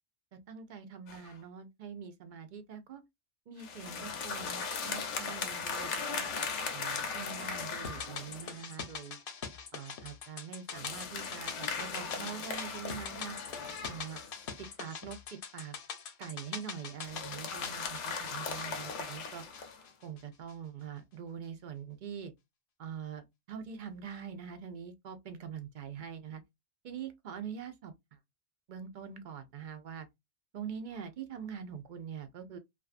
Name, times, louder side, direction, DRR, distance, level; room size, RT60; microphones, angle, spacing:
voice 1, 0.5-3.0 3.5-6.3 6.7-9.2 9.7-13.4 13.8-14.2 14.6-15.8 16.2-19.4 20.0-22.3 22.8-26.4 26.8-27.9 28.7-30.1 30.5-32.6, right 7 dB, 60° right, 0.5 m, -44 dB
sound 1, 1.1-1.3 3.6-8.6 10.7-14.5 17.0-19.8, left 5 dB, 90° left, 1.0 m, -38 dB
sound 2, 7.8-20.2 20.5-20.6, left 6 dB, 60° left, 0.7 m, -44 dB
2.5 x 2.3 x 2.3 m
omnidirectional pair, 1.2 m